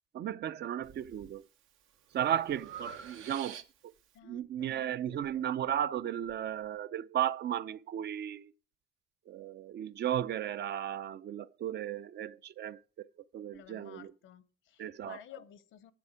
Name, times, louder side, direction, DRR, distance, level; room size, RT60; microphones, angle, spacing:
voice 1, 0.1-1.4 2.1-3.6 4.2-8.5 9.3-13.1 13.3-14.1 14.8-15.2, right 10 dB, 60° right, 0.5 m, -35 dB
Breathing, 0.8-1.3 1.8-4.0, right 6 dB, 85° right, 1.0 m, -48 dB
voice 2, 4.1-5.6 13.5-15.9, left 11 dB, 80° left, 0.8 m, -54 dB
7.8 x 6.9 x 4.8 m
cardioid pair, 90°, 20 cm